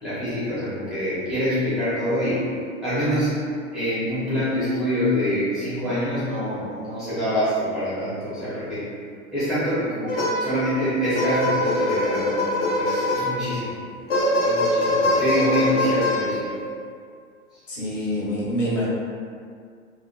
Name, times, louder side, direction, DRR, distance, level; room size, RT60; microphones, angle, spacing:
voice 1, 0.0-2.5 2.8-3.4 3.7-8.8 9.3-13.7 14.4-16.5, equal, ahead, -14 dB, 0.5 m, -25 dB
sound 1, 10.1-10.7 11.2-13.6 14.1-16.7, left 1 dB, 45° left, 0.6 m, -23 dB
voice 2, 17.7-18.9, equal, 65° left, -7 dB, 1.0 m, -26 dB
2.4 x 2.2 x 2.5 m, 2.2 s
figure-of-eight pair, 100°, 41 cm